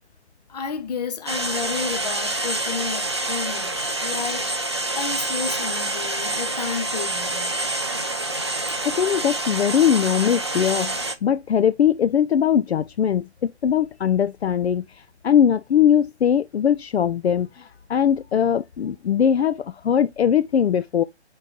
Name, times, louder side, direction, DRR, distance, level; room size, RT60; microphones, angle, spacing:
voice 1, 0.5-4.5 4.9-7.6, left 6 dB, 35° left, 0.7 m, -31 dB
sound 1, 1.3-11.1, right 2 dB, 25° right, 0.3 m, -27 dB
voice 2, 8.8-13.3 13.6-14.9 15.2-21.0, left 9 dB, 70° left, 0.4 m, -20 dB
4.4 x 3.9 x 3.0 m
figure-of-eight pair, 145°, 34 cm